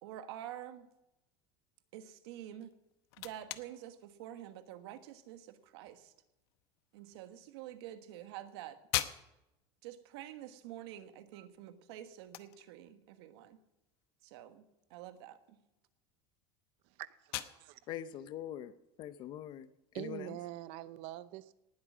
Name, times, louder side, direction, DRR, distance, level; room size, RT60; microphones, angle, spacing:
voice 1, 0.0-0.9 1.9-2.7 3.2-6.1 6.9-8.8 9.8-13.6 14.2-14.6 14.9-15.6, right 12 dB, 80° right, 9 dB, 1.4 m, -48 dB
sound 1, 2.6-20.2, left 15 dB, 75° left, 0.9 m, -47 dB
voice 2, 16.8-17.8 19.9-21.5, right 15 dB, 50° right, 16 dB, 0.6 m, -45 dB
voice 3, 17.9-20.4, left 11 dB, 35° left, 14 dB, 0.6 m, -44 dB
18.5 x 8.6 x 6.2 m, 0.91 s
cardioid pair, 180°, 13 cm